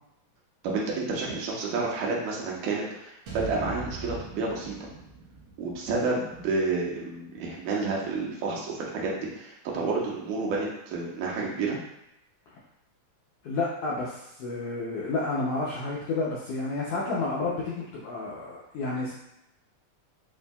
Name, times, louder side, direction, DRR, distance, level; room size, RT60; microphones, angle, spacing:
voice 1, 0.6-4.9 5.6-11.8, right 3 dB, 85° right, -3 dB, 2.3 m, -30 dB
sound 1, 3.3-7.5, right 4 dB, 65° right, 1.2 m, -41 dB
voice 2, 13.4-19.1, left 3 dB, 80° left, -6 dB, 1.4 m, -30 dB
6.9 x 2.6 x 2.2 m, 0.84 s
omnidirectional pair, 3.5 m